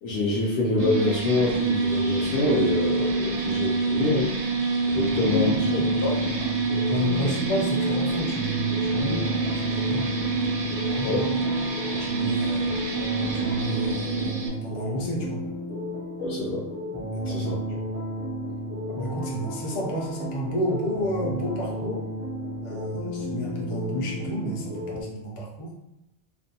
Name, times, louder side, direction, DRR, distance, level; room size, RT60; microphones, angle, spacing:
voice 1, 0.0-4.4 4.7-5.5 6.0-6.1 7.1-7.3 11.0-11.3 16.2-16.7 17.2-17.6, left 2 dB, 70° left, -4 dB, 0.8 m, -26 dB
sound 1, 0.8-14.5, right 3 dB, 75° right, 0.8 m, -26 dB
voice 2, 4.9-5.9 6.3-10.1 10.8-11.2 11.9-12.7 13.2-15.5 17.1-17.9 18.9-22.0 22.6-25.7, equal, 40° left, -3 dB, 0.5 m, -31 dB
sound 2, 5.3-25.0, equal, 15° right, 0.4 m, -33 dB
2.5 x 2.2 x 2.7 m, 0.89 s
omnidirectional pair, 1.2 m